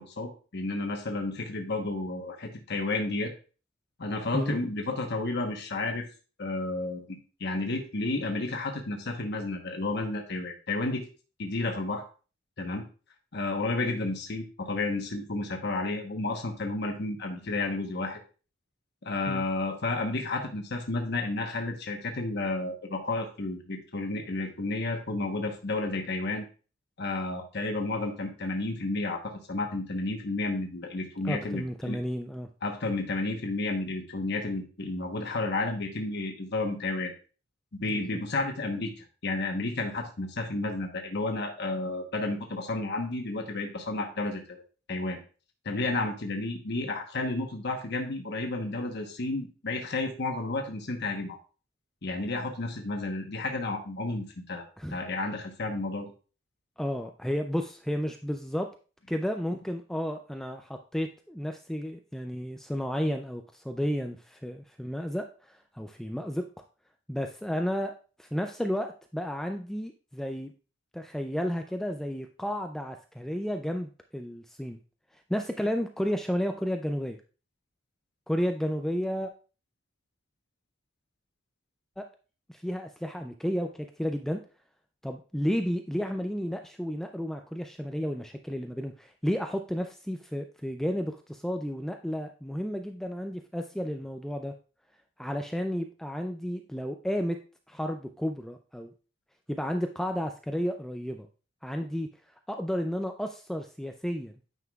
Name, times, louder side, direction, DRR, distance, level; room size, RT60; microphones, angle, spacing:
voice 1, 0.0-3.3 4.0-6.1 6.4-11.1 11.4-12.0 12.6-12.8 13.3-18.2 19.0-26.4 27.0-32.0 32.6-37.1 37.8-44.6 44.9-45.2 45.6-51.4 52.0-54.6 54.9-56.1, left 2 dB, 60° left, 3 dB, 1.0 m, -31 dB
voice 2, 31.2-32.5 37.9-38.2 54.8-55.0 56.8-58.7 59.1-66.4 67.1-67.9 68.2-70.5 70.9-74.8 75.3-77.2 78.3-79.3 82.0-82.1 82.5-84.4 85.0-94.5 95.2-97.4 97.7-98.9 99.5-101.3 101.6-102.1 102.5-104.3, equal, ahead, 5 dB, 0.3 m, -32 dB
9.1 x 5.7 x 2.3 m, 0.36 s
head